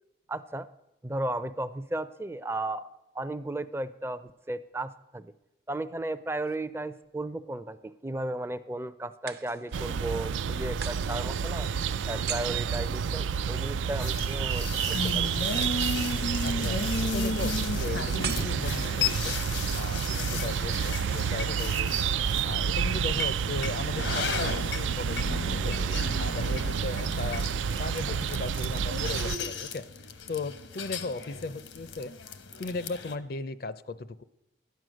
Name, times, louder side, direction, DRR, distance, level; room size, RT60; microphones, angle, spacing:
voice 1, 0.3-0.7 1.0-2.9 3.1-5.3 5.7-11.7 12.1-14.8 15.1-15.7, right 1 dB, 15° right, 13 dB, 0.4 m, -35 dB
sound 1, 6.2-7.2 9.3-10.0 10.8-13.7 18.2-19.3, right 9 dB, 55° right, 0.7 m, -41 dB
sound 2, 9.7-29.4, right 7 dB, 90° right, 0.4 m, -29 dB
voice 2, 13.8-14.1 16.4-19.3 19.7-22.1 22.4-25.8 26.2-27.5 27.8-29.9 30.3-32.1 32.6-34.2, left 3 dB, 50° left, 15 dB, 0.5 m, -37 dB
sound 3, 14.0-33.1, left 4 dB, 85° left, 1.0 m, -35 dB
12.0 x 9.2 x 6.3 m, 0.91 s
head